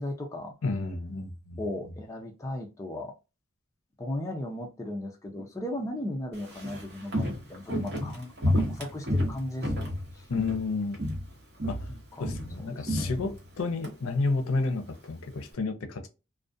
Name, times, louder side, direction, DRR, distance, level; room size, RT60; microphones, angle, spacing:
voice 1, 0.0-0.5 1.6-3.1 4.0-10.3 11.9-12.2 12.6-13.2, left 1 dB, 15° left, 0.4 m, -37 dB
voice 2, 0.6-1.6 10.3-11.0 11.6-11.9 12.2-16.1, left 3 dB, 90° left, 0.5 m, -31 dB
Walk footsteps, 6.3-10.7 10.9-11.3 11.6-13.9 14.2-14.3, equal, 55° right, 0.8 m, -30 dB
2.4 x 2.1 x 2.5 m
head